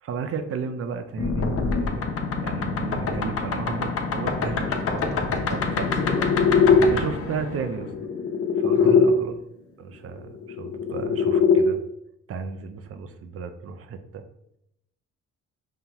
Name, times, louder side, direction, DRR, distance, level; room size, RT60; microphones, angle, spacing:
voice 1, 0.0-2.1 2.4-5.0 5.5-5.9 6.8-7.9 8.6-9.4 9.8-11.8 12.3-14.2, right 6 dB, 50° right, 8 dB, 0.5 m, -34 dB
sound 1, 1.2-9.1 10.4-11.6, left 5 dB, 50° left, 0.6 m, -23 dB
voice 2, 4.6-5.2 5.5-6.3 8.7-9.1, left 2 dB, 10° left, -4 dB, 1.2 m, -35 dB
5.4 x 2.2 x 2.9 m, 0.77 s
cardioid pair, 90°, 30 cm